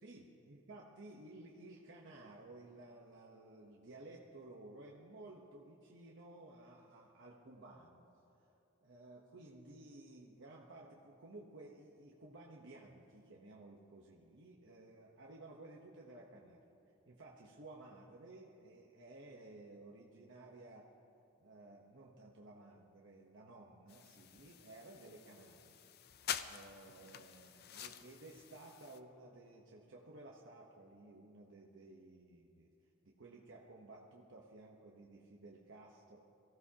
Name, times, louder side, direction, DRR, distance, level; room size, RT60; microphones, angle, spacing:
voice 1, 0.0-8.1 8.8-16.6 17.1-20.9 21.4-25.8 26.4-32.7 33.0-36.2, right 2 dB, 65° right, -2 dB, 1.1 m, -55 dB
sound 1, 23.9-29.0, left 9 dB, 50° left, 0.5 m, -47 dB
23.0 x 15.5 x 2.9 m, 2.8 s
head